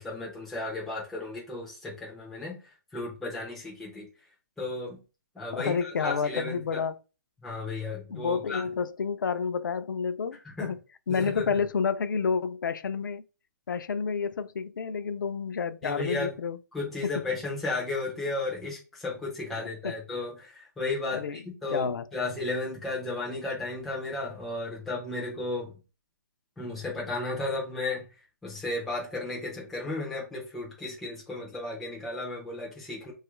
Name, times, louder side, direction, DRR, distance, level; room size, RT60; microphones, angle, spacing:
voice 1, 0.0-2.6 2.9-4.1 4.6-5.0 5.4-6.8 7.4-8.6 10.4-10.7 11.1-11.6 15.8-16.3 16.7-25.7 26.6-28.1 28.4-33.1, left 2 dB, ahead, 0.3 m, -34 dB
voice 2, 5.4-7.0 8.1-10.8 11.1-13.2 13.7-16.6 17.0-17.1 19.8-19.9 21.1-21.4 21.7-22.0, left 5 dB, 70° left, 0.4 m, -30 dB
3.0 x 2.3 x 3.0 m
hypercardioid pair, 175°, 11 cm